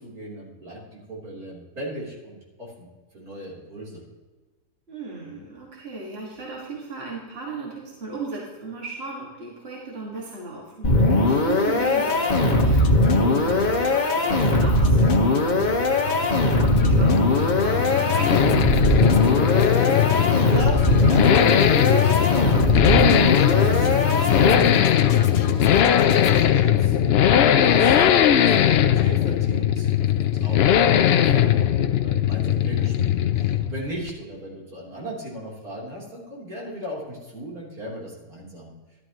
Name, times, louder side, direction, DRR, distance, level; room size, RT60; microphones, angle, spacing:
voice 1, 0.0-2.9 3.1-4.0 20.4-38.7, equal, 65° right, -5 dB, 4.2 m, -36 dB
voice 2, 4.9-19.9, right 3 dB, 40° right, -4 dB, 2.2 m, -36 dB
sound 1, 10.8-24.9, left 2 dB, 30° left, 1.3 m, -20 dB
sound 2, 12.1-26.5, left 5 dB, 50° left, 1.0 m, -35 dB
Accelerating revving vroom, 15.6-33.8 34.1-34.2, left 10 dB, 70° left, 0.6 m, -20 dB
13.5 x 12.0 x 3.1 m, 1.2 s
omnidirectional pair, 1.7 m